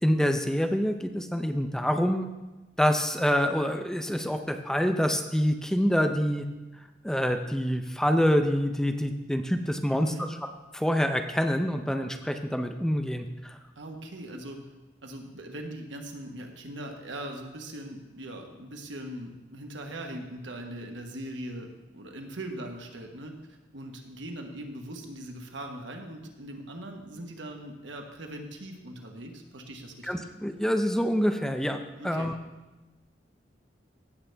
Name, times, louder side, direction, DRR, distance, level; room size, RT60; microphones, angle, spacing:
voice 1, 0.0-2.3 2.8-6.4 7.0-10.1 10.7-13.6 30.1-32.3, equal, 5° left, 6 dB, 0.5 m, -26 dB
voice 2, 9.9-10.3 13.8-14.6 15.0-30.3 31.9-32.3, right 1 dB, 85° right, 3 dB, 1.3 m, -40 dB
16.0 x 6.7 x 3.4 m, 1.1 s
head